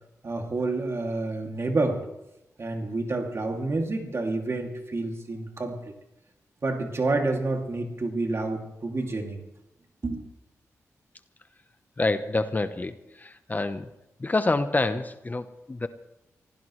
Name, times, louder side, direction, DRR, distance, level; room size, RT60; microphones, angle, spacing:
voice 1, 0.2-2.0 2.6-5.9 6.6-9.4 10.0-10.2, right 2 dB, 50° right, 3 dB, 2.6 m, -29 dB
voice 2, 12.0-13.9 14.2-15.9, left 2 dB, 30° left, 10 dB, 0.9 m, -27 dB
25.0 x 16.0 x 3.2 m, 0.91 s
cardioid pair, 65°, 6 cm